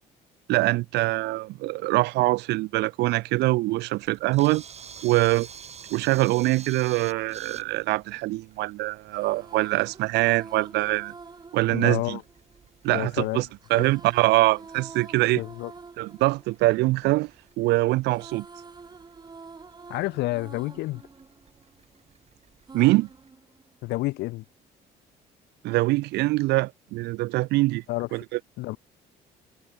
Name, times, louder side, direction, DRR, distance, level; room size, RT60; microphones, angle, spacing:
voice 1, 0.5-4.6 5.0-5.5 5.9-11.1 11.5-12.2 12.8-15.4 16.0-17.3 17.6-18.4 22.7-23.1 25.6-27.8 28.1-28.4, right 20 dB, 85° right, 0.8 m, -23 dB
Camera, 4.0-23.3, right 7 dB, 40° right, 5.5 m, -50 dB
sound 1, 9.1-13.0 13.6-17.7 17.9-22.2 22.7-24.1, right 4 dB, 25° right, 4.1 m, -48 dB
voice 2, 11.7-12.2 12.9-13.5 13.8-13.9 15.4-15.7 19.9-21.0 23.8-24.4 27.9-28.1 28.6-28.8, left 20 dB, 80° left, 0.6 m, -29 dB
cardioid pair, 110°, 17 cm